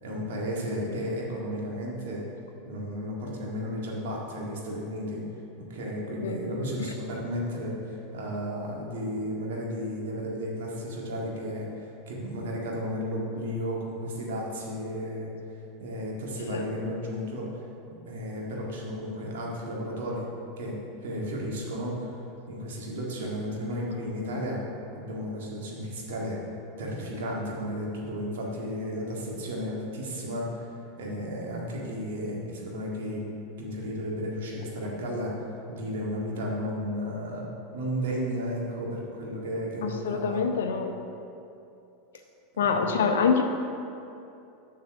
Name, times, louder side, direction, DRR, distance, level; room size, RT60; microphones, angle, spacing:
voice 1, 0.0-2.2 2.6-5.2 5.7-15.3 15.8-17.5 18.0-20.3 20.6-20.8 21.0-22.1 22.5-24.6 24.9-26.4 26.8-30.7 31.0-33.2 33.6-35.3 35.7-37.5 37.7-40.5 42.5-42.9, equal, 70° right, -3 dB, 1.8 m, -33 dB
voice 2, 6.2-6.6 16.5-16.6 39.8-41.0 42.6-43.5, left 5 dB, 75° left, 6 dB, 0.7 m, -26 dB
7.4 x 5.7 x 5.9 m, 2.7 s
hypercardioid pair, 90°, 0 cm